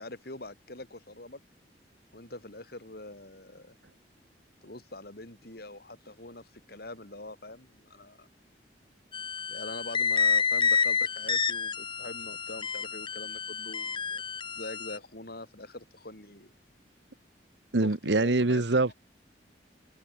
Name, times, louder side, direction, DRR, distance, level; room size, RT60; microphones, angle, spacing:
voice 1, 0.0-1.4 2.1-3.7 4.6-8.3 9.5-14.2 14.5-16.5 17.8-18.7, left 2 dB, 60° left, 4.2 m, -44 dB
sound 1, 9.1-15.0, left 6 dB, 30° left, 1.0 m, -29 dB
voice 2, 17.7-18.9, right 2 dB, 90° right, 1.1 m, -24 dB
head